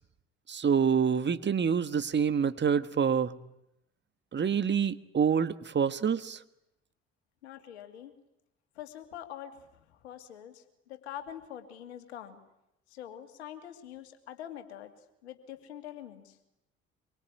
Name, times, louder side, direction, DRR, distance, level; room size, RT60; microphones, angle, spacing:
voice 1, 0.5-3.3 4.3-6.4, right 7 dB, 35° right, 12 dB, 1.5 m, -27 dB
voice 2, 7.4-8.1 8.7-12.4 12.9-14.9 15.2-16.4, left 10 dB, 80° left, 7 dB, 2.5 m, -45 dB
25.5 x 24.0 x 9.9 m, 0.85 s
hypercardioid pair, 60°, 32 cm